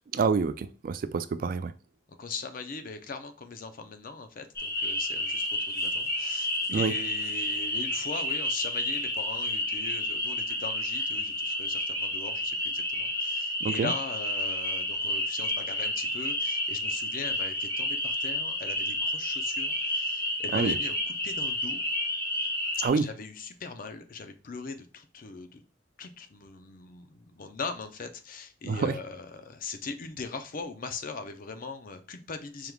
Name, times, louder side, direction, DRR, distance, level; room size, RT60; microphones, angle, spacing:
voice 1, 0.1-1.7 6.7-6.9 13.6-13.9 20.5-20.8 22.8-23.1 28.6-29.0, right 5 dB, 50° right, 0.3 m, -27 dB
voice 2, 2.1-21.9 22.9-25.6 26.0-32.7, left 4 dB, 50° left, 0.5 m, -40 dB
sound 1, 4.6-22.9, left 1 dB, 15° left, 1.2 m, -30 dB
4.6 x 3.5 x 2.3 m
head